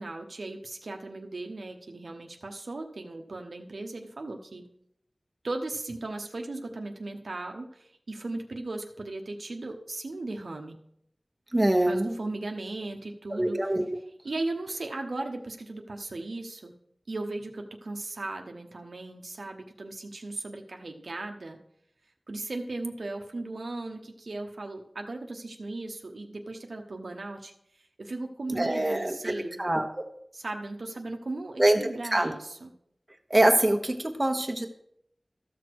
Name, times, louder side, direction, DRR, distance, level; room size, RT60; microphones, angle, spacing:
voice 1, 0.0-4.6 5.4-10.8 11.8-13.6 14.2-16.7 17.1-21.6 22.3-27.5 28.0-29.6 30.3-32.7, right 2 dB, 85° right, 3 dB, 1.0 m, -37 dB
voice 2, 11.5-12.1 13.4-13.8 28.5-29.2 29.6-29.9 31.6-31.8 32.1-32.3 33.3-34.7, right 1 dB, 25° right, 4 dB, 1.2 m, -24 dB
13.5 x 6.1 x 4.7 m, 0.72 s
wide cardioid pair, 65°, 0 cm